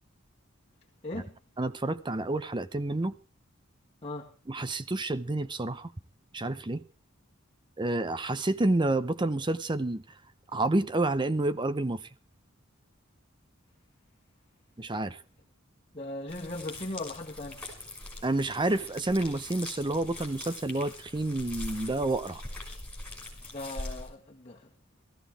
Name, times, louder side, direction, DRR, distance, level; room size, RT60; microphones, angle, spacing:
voice 1, 1.0-1.4 4.0-4.4 15.9-17.7 23.5-24.7, left 2 dB, 30° left, 1.8 m, -38 dB
voice 2, 1.6-3.1 4.5-5.9 6.3-6.8 7.8-10.2 10.5-12.1 14.8-15.2 18.2-22.4, right 2 dB, 25° right, 0.6 m, -29 dB
sound 1, 16.3-24.1, left 2 dB, 5° left, 5.6 m, -42 dB
17.0 x 14.5 x 4.7 m
head